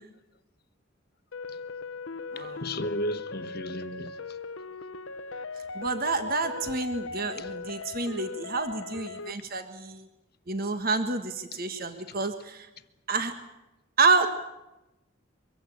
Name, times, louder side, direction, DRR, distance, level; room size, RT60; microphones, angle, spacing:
sound 1, 1.3-9.3, left 4 dB, 80° left, 0.9 m, -39 dB
voice 1, 2.4-4.4 7.4-7.5 11.5-11.6 12.1-12.2, left 1 dB, 50° left, 1.3 m, -35 dB
voice 2, 5.7-10.0 10.5-12.7 13.1-13.3 14.0-14.3, right 3 dB, 45° right, 1.6 m, -28 dB
24.0 x 16.0 x 9.9 m
head